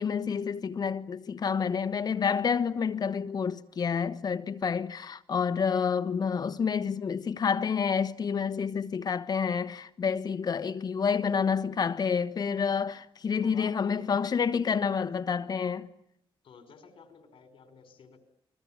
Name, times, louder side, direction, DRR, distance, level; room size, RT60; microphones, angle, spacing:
voice 1, 0.0-15.9, left 6 dB, 45° left, 1.2 m, -29 dB
voice 2, 13.4-14.0 16.4-18.2, left 6 dB, 70° left, 5.1 m, -51 dB
29.0 x 21.5 x 8.8 m
wide cardioid pair, 125°, 9 cm